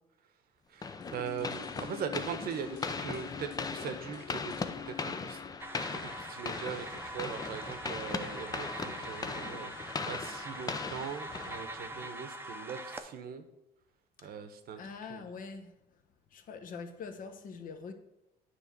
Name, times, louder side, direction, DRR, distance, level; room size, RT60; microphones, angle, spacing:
voice 1, 0.7-5.4 5.9-9.7 10.1-13.4 14.2-14.8 15.1-15.2, right 7 dB, 65° right, 1.0 m, -41 dB
sound 1, 0.8-12.1, left 4 dB, 20° left, 0.6 m, -39 dB
sound 2, 1.0-6.9 7.2-7.3, left 9 dB, 80° left, 0.9 m, -47 dB
sound 3, 5.6-13.0, right 1 dB, 15° right, 0.7 m, -43 dB
voice 2, 14.8-16.0 16.3-17.9, left 5 dB, 55° left, 1.1 m, -44 dB
9.8 x 3.3 x 6.7 m
cardioid pair, 110°, 17 cm